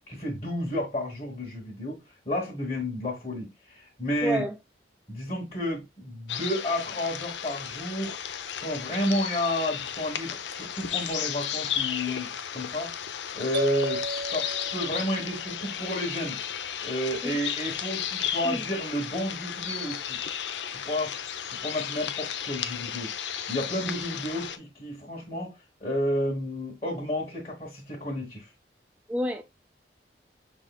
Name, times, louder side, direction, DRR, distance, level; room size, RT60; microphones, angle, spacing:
voice 1, 0.1-2.0 2.2-4.4 5.1-8.2 8.6-12.3 12.5-12.9 13.3-16.4 16.8-20.2 20.7-21.1 21.5-23.1 23.5-25.5 25.8-28.5, left 1 dB, 35° left, 1.3 m, -31 dB
voice 2, 4.2-4.6 17.2-17.4 18.4-18.6 29.1-29.4, equal, 5° right, 0.4 m, -29 dB
sound 1, 6.3-24.6, left 9 dB, 85° left, 0.5 m, -34 dB
sound 2, 13.5-15.4, right 2 dB, 75° right, 0.8 m, -33 dB
6.2 x 3.6 x 2.2 m
head